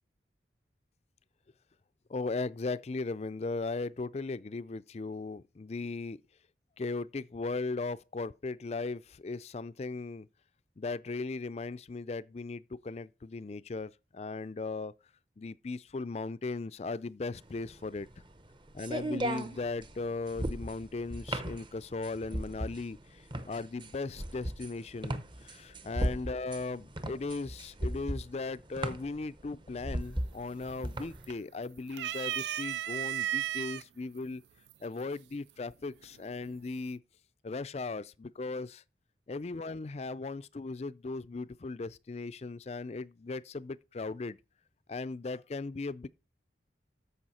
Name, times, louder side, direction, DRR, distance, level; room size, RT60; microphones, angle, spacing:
voice 1, 2.1-6.2 6.8-10.3 10.8-14.9 15.4-18.1 18.7-34.4 34.8-37.0 37.4-38.8 39.3-44.4 44.9-46.1, left 3 dB, 35° left, 0.4 m, -37 dB
sound 1, 17.4-31.3, right 1 dB, 25° right, 0.8 m, -36 dB
sound 2, 30.0-30.5 30.8-31.5 31.9-33.8 34.7-34.8 36.0-36.5, right 12 dB, 75° right, 0.4 m, -34 dB
14.0 x 5.6 x 4.2 m
head